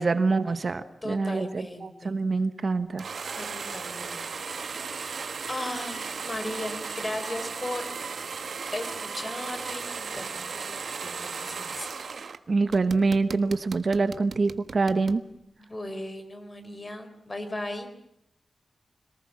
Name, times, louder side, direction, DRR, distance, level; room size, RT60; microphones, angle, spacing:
voice 1, 0.0-3.0 12.5-15.2, right 3 dB, 45° right, 11 dB, 1.2 m, -25 dB
voice 2, 1.0-2.1 3.4-4.3 4.6-7.9 8.7-10.7 11.0-11.9 15.6-17.9, left 1 dB, 25° left, 8 dB, 4.1 m, -37 dB
sound 1, 3.0-12.4 12.7-15.2, right 5 dB, 65° right, 1.4 m, -36 dB
26.5 x 19.5 x 7.3 m, 0.79 s
wide cardioid pair, 115°, 0 cm